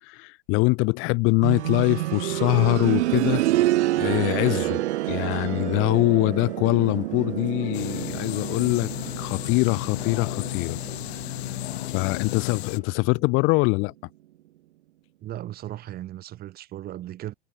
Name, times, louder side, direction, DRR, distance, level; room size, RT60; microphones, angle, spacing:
voice 1, 0.0-3.4 4.0-4.8 5.1-8.9 9.2-10.8 11.9-13.9, left 27 dB, 40° left, 1.0 m, -23 dB
sound 1, 1.4-12.2 13.6-13.7, right 16 dB, 80° right, 0.7 m, -28 dB
sound 2, 1.5-12.8, left 9 dB, 20° left, 7.3 m, -51 dB
sound 3, 7.7-12.8, left 16 dB, 65° left, 2.5 m, -33 dB
voice 2, 15.2-17.3, right 13 dB, 25° right, 1.7 m, -36 dB
supercardioid pair, 140°, 34 cm